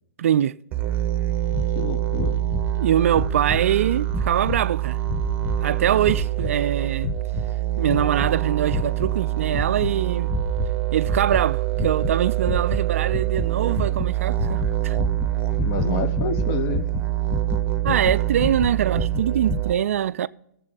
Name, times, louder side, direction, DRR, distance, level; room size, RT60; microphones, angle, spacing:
voice 1, 0.2-0.6 2.8-5.0 5.6-7.1 7.8-10.3 10.9-15.0 17.8-20.3, right 10 dB, 60° right, 0.4 m, -23 dB
sound 1, 0.7-19.7, right 15 dB, 20° right, 0.9 m, -25 dB
sound 2, 1.5-1.7 2.1-2.8 3.1-3.7 4.1-4.6 5.1-5.6 6.0-6.6 7.0-7.5 7.9-8.3 8.7-9.2 9.5-9.9 10.3-10.7 11.0-11.5 11.7-12.2 12.4-19.6, left 5 dB, 10° left, 0.4 m, -30 dB
voice 2, 1.7-2.4 15.6-16.9, left 6 dB, 35° left, 1.0 m, -29 dB
17.0 x 7.4 x 4.0 m
figure-of-eight pair, 120°, 9 cm